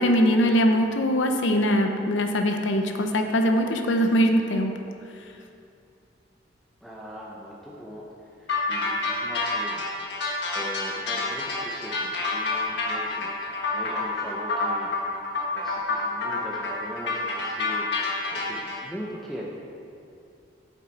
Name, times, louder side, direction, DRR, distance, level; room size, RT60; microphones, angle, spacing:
voice 1, 0.0-4.7, equal, 80° left, 5 dB, 0.8 m, -22 dB
voice 2, 6.8-9.9 10.5-13.3 13.7-14.9 15.5-17.9 18.3-19.4, equal, ahead, -5 dB, 0.7 m, -40 dB
sound 1, 8.5-18.8, left 3 dB, 60° left, 1.4 m, -28 dB
8.8 x 7.3 x 4.2 m, 2.6 s
head